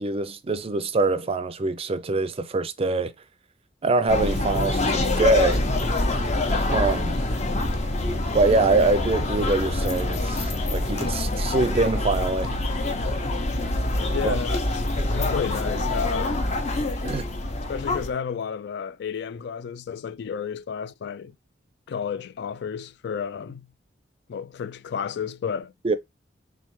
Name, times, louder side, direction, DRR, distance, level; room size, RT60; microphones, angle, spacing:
voice 1, 0.0-3.1 3.8-5.7 6.7-7.2 8.3-12.6 14.2-14.4 17.0-17.3 25.8-25.9, right 3 dB, 35° right, 0.5 m, -24 dB
sound 1, 4.1-18.1, left 2 dB, 40° left, 0.8 m, -25 dB
voice 2, 14.1-16.5 17.7-21.3 21.9-23.7 24.3-25.7, left 7 dB, 65° left, 0.3 m, -32 dB
3.6 x 3.3 x 3.0 m
head